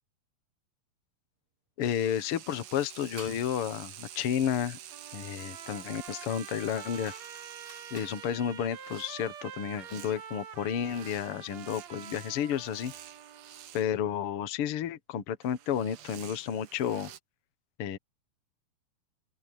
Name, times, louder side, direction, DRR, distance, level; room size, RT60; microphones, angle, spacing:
voice 1, 1.8-4.8 5.1-7.1 7.9-12.9 13.7-17.1 17.8-18.0, left 9 dB, 90° left, 1.2 m, -31 dB
sound 1, 1.8-14.0 15.4-17.2, right 11 dB, 75° right, 1.5 m, -49 dB
sound 2, 3.2-3.5 6.0-8.3, right 2 dB, 30° right, 8.5 m, -51 dB
Trumpet, 4.9-13.7, right 8 dB, 55° right, 2.3 m, -47 dB
open air
omnidirectional pair, 4.7 m